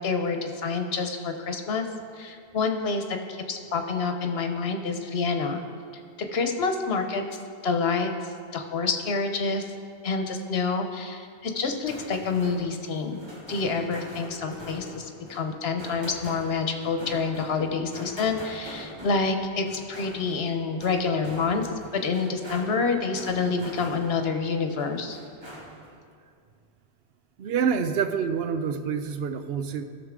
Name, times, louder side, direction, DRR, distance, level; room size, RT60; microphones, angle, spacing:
voice 1, 0.0-1.9 2.2-5.6 6.3-7.2 7.6-8.1 8.5-9.6 10.0-13.2 13.5-21.7 21.9-25.2, left 4 dB, 75° left, 6 dB, 1.1 m, -27 dB
sound 1, 11.6-24.4 24.8-26.0, equal, 25° right, 1.8 m, -43 dB
voice 2, 27.4-29.8, right 6 dB, 70° right, 9 dB, 0.8 m, -27 dB
16.0 x 6.7 x 3.7 m, 2.2 s
omnidirectional pair, 1.1 m